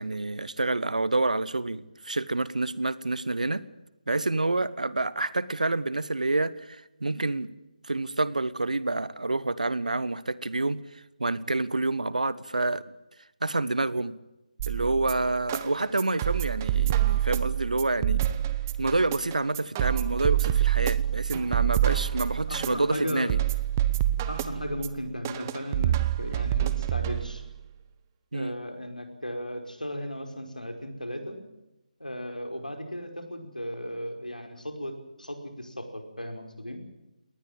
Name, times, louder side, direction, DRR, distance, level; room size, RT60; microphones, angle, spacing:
voice 1, 0.0-3.6 4.1-7.5 7.8-12.8 13.4-14.2 14.7-18.2 18.8-23.4 28.3-28.5, right 2 dB, 65° right, 18 dB, 1.3 m, -28 dB
sound 1, 14.6-27.6, right 12 dB, 20° right, 1.0 m, -27 dB
voice 2, 22.5-23.3 24.3-27.4 28.3-31.4 32.0-34.9 35.2-36.8, equal, 85° left, 6 dB, 5.2 m, -36 dB
21.0 x 19.5 x 8.9 m, 0.94 s
figure-of-eight pair, 150°, 4 cm